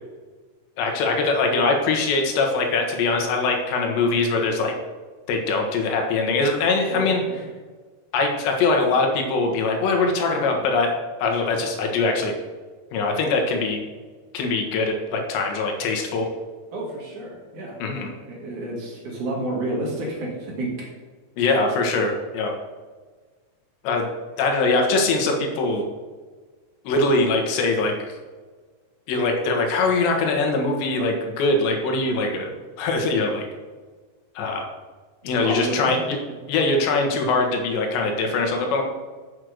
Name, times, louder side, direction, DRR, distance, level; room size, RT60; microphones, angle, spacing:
voice 1, 0.8-4.7 5.3-7.2 8.1-10.9 11.2-12.3 12.9-13.8 14.3-16.3 17.8-18.1 21.4-22.5 23.8-24.1 24.4-25.9 26.9-27.9 29.1-32.5 32.8-33.5 34.4-34.6 35.2-36.2 36.5-38.8, left 3 dB, 75° left, 2 dB, 3.5 m, -22 dB
voice 2, 6.9-7.4 16.7-20.9 35.2-36.4, right 1 dB, 55° right, -3 dB, 2.8 m, -31 dB
7.6 x 6.3 x 6.5 m, 1.4 s
omnidirectional pair, 5.1 m